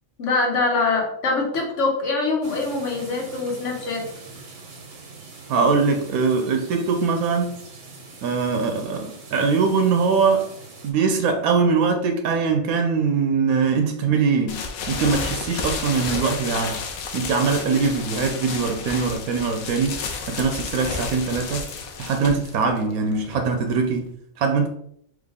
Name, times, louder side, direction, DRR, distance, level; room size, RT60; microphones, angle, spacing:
voice 1, 0.2-4.0, left 3 dB, 60° left, 1.3 m, -23 dB
sound 1, 2.4-10.9, right 3 dB, 50° right, 1.0 m, -43 dB
voice 2, 5.5-7.6 8.2-10.5 10.8-16.8 17.1-20.0 20.3-21.6 22.0-24.1 24.4-24.7, right 5 dB, 80° right, 1.0 m, -22 dB
sound 2, 14.5-24.1, left 5 dB, 80° left, 1.1 m, -32 dB
3.8 x 3.2 x 3.5 m
omnidirectional pair, 1.5 m